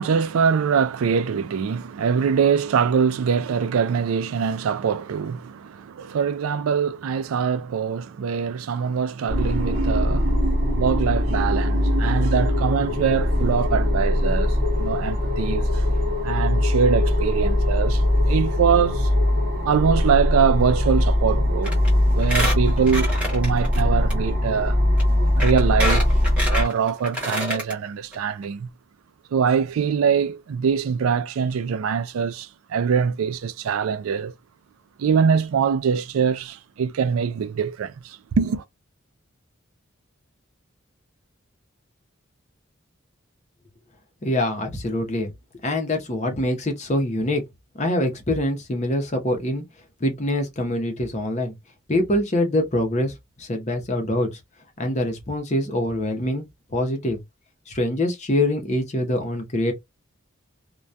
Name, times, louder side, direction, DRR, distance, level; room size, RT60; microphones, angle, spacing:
voice 1, 0.0-15.9 16.2-19.1 19.7-21.8 22.1-24.8 25.4-26.1 26.5-28.7 29.3-34.3 35.0-38.6, right 6 dB, 85° right, 0.3 m, -23 dB
sound 1, 9.3-26.6, left 1 dB, 45° right, 0.8 m, -21 dB
Squeak, 21.6-21.9 22.2-23.8 24.1-24.2 25.0-25.1 25.4-27.7 28.1-28.2 28.4-28.5, equal, 5° right, 1.0 m, -27 dB
voice 2, 44.2-45.3 45.6-47.4 47.8-49.6 50.0-51.5 51.9-53.1 53.4-54.3 54.8-56.4 56.7-57.2 57.7-59.7, left 1 dB, 35° left, 0.7 m, -24 dB
2.2 x 2.2 x 2.6 m
head